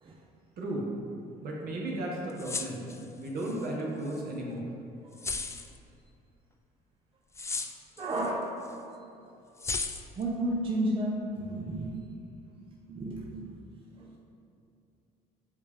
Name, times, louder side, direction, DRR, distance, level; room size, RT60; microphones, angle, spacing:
voice 1, 0.6-0.9 1.4-2.8 3.2-4.7, right 1 dB, 60° right, -3 dB, 1.5 m, -34 dB
sound 1, 2.3-3.7 4.1-4.2 5.2-5.8 7.3-8.3 8.6-8.7 9.6-10.2, left 4 dB, 15° left, 0.3 m, -35 dB
voice 2, 8.0-8.5 10.2-12.0 12.9-13.5 14.0-14.1, right 1 dB, 30° right, -3 dB, 0.7 m, -32 dB
9.0 x 3.5 x 3.6 m, 2.7 s
cardioid pair, 110°, 17 cm